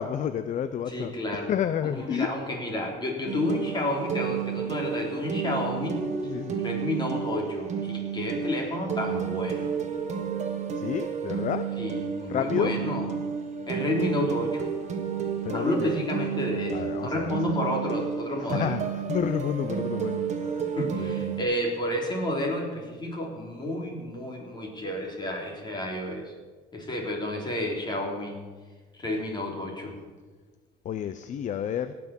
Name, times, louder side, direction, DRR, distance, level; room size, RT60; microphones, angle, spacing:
voice 1, 0.0-2.3 5.4-5.6 6.2-6.6 10.7-11.7 12.3-12.7 15.4-16.0 16.7-17.6 18.4-20.7 21.0-21.4 30.8-31.9, left 9 dB, 45° left, 11 dB, 0.6 m, -31 dB
voice 2, 0.9-1.5 2.0-6.0 6.6-9.7 11.8-13.1 13.7-14.7 15.5-18.7 20.8-26.3 26.7-28.4 29.0-30.0, left 1 dB, 25° left, 0 dB, 3.6 m, -30 dB
sound 1, 3.3-21.4, right 7 dB, 45° right, 1.7 m, -31 dB
18.0 x 6.1 x 7.1 m, 1.4 s
cardioid pair, 110°, 17 cm